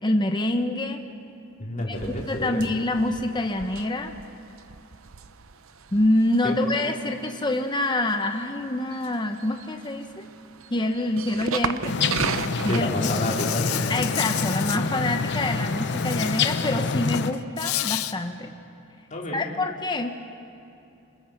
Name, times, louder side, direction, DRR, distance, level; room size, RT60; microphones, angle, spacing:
voice 1, 0.0-1.0 1.9-2.0 2.2-4.1 5.9-10.3 10.7-12.9 13.9-18.5 19.3-20.1, left 1 dB, 20° left, 5 dB, 0.9 m, -26 dB
voice 2, 1.6-2.6 6.4-6.5 12.7-13.6 19.1-19.4, left 1 dB, 35° left, -2 dB, 3.7 m, -29 dB
sound 1, 1.9-12.8, right 6 dB, 70° right, 0.8 m, -36 dB
sound 2, 11.9-17.3, left 4 dB, 55° left, 0.8 m, -27 dB
Insect, 13.0-14.8 15.9-16.7 17.0-18.1, left 13 dB, 85° left, 0.8 m, -31 dB
29.0 x 21.0 x 5.9 m, 2.8 s
head